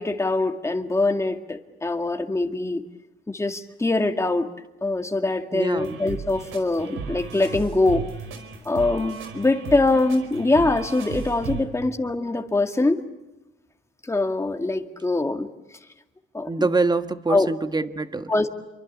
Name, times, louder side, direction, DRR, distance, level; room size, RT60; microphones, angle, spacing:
voice 1, 0.0-2.8 3.3-4.5 4.8-8.0 8.7-13.0 14.0-15.5 16.3-16.7 17.3-17.5 18.3-18.5, left 2 dB, 15° left, 5 dB, 2.1 m, -23 dB
voice 2, 5.5-6.0 16.5-18.3, right 3 dB, 20° right, 10 dB, 1.5 m, -25 dB
sound 1, 5.8-11.6, right 6 dB, 85° right, 4.7 m, -35 dB
27.5 x 24.5 x 8.4 m, 1.0 s
cardioid pair, 90°, 20 cm